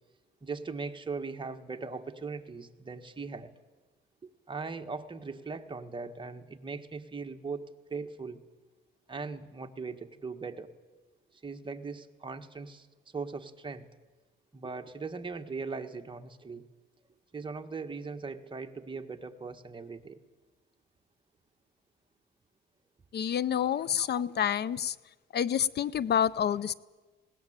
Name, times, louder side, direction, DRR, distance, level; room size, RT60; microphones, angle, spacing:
voice 1, 0.4-3.5 4.2-8.4 9.1-10.7 11.4-12.9 13.1-13.9 14.5-16.7 17.3-20.2 24.0-24.2, right 4 dB, 25° right, 5 dB, 1.6 m, -39 dB
voice 2, 23.1-25.0 25.3-26.7, left 9 dB, 55° left, 20 dB, 0.6 m, -28 dB
19.0 x 18.5 x 8.9 m, 1.3 s
cardioid pair, 90°, 20 cm